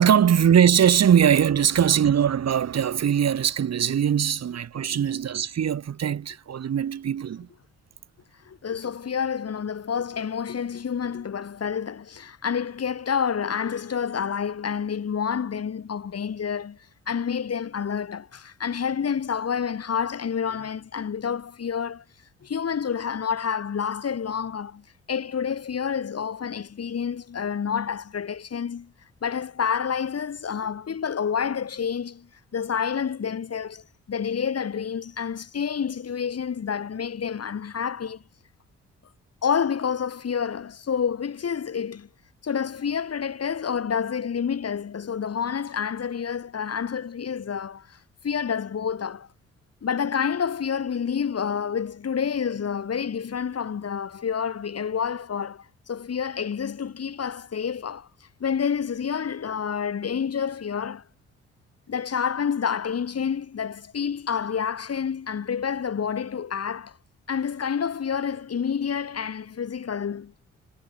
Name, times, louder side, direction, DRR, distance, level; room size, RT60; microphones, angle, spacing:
voice 1, 0.0-7.5, right 9 dB, 55° right, 2.7 m, -21 dB
voice 2, 8.5-16.8 17.1-22.0 22.4-24.8 25.1-28.9 29.2-38.2 39.4-42.1 42.4-48.0 48.2-49.3 49.8-58.1 58.4-61.0 61.9-67.0 67.3-70.3, left 7 dB, 50° left, 5.5 m, -28 dB
hypercardioid pair, 40°, 32 cm